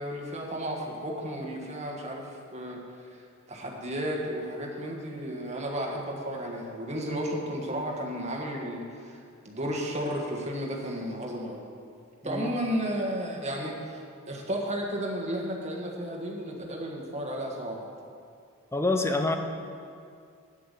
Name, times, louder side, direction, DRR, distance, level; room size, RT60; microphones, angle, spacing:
voice 1, 0.0-2.8 3.1-3.2 3.5-9.2 9.4-11.7 12.2-14.0 14.3-17.9, equal, 30° right, -1 dB, 1.5 m, -33 dB
voice 2, 18.7-19.4, left 2 dB, 15° left, 6 dB, 0.6 m, -26 dB
8.9 x 7.8 x 6.8 m, 2.4 s
head